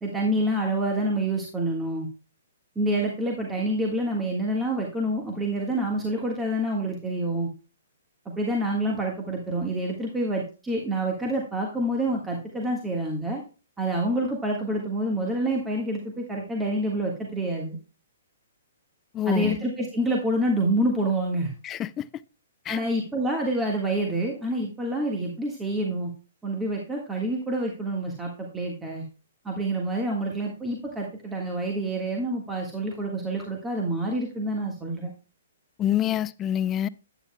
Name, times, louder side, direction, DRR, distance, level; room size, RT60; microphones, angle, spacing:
voice 1, 0.0-2.1 2.7-7.5 8.4-13.4 13.8-17.8 19.2-21.5 22.7-26.1 26.4-29.0 29.4-35.1, right 1 dB, 10° right, 1.6 m, -27 dB
voice 2, 19.1-19.6 21.6-22.1 22.7-22.8 35.8-36.9, left 11 dB, 20° left, 0.3 m, -26 dB
9.8 x 9.0 x 2.2 m
hypercardioid pair, 130°, 0 cm